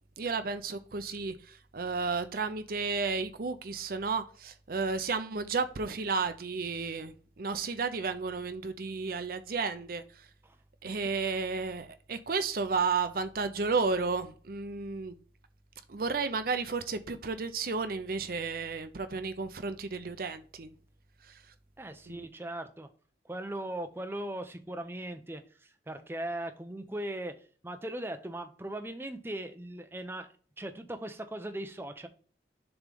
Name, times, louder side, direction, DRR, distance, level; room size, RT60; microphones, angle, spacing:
voice 1, 0.2-10.3 10.8-15.1 15.9-20.7 21.2-21.4 22.1-22.3, right 4 dB, 50° right, 0.6 m, -33 dB
voice 2, 21.8-22.9 23.2-27.3 27.6-30.3 30.6-32.1, right 1 dB, 10° right, 0.6 m, -39 dB
7.0 x 3.2 x 5.2 m
head